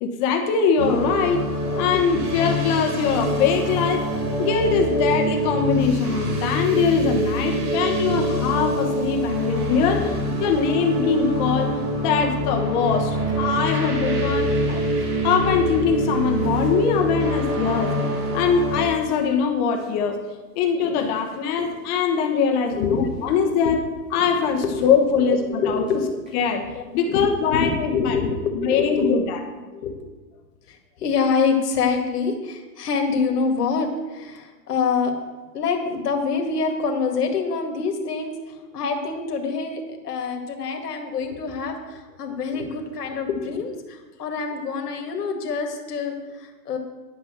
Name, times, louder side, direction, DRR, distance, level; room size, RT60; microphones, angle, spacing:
voice 1, 0.0-4.1 4.4-10.1 10.4-14.8 15.2-17.9 18.3-20.2 20.5-23.8 24.1-25.8 26.3-26.6 26.9-28.2 28.5-29.4, left 6 dB, 25° left, 4 dB, 1.1 m, -22 dB
sound 1, 0.8-18.9, equal, 60° right, 4.1 m, -25 dB
voice 2, 1.9-2.3 10.0-10.2 22.7-23.1 23.6-23.7 24.7-24.9 25.2-26.2 26.7-29.2 29.7-30.0 30.7-35.1 35.5-46.8, left 5 dB, 70° left, 3 dB, 2.1 m, -26 dB
sound 2, 13.2-14.2 14.5-17.2 17.6-18.5 18.9-19.0 19.1-20.1 20.7-23.3 24.1-25.3 25.6-26.6 26.9-27.0 27.3-27.7, equal, 5° right, 0.4 m, -43 dB
10.5 x 5.5 x 7.4 m, 1.3 s
hypercardioid pair, 150°, 48 cm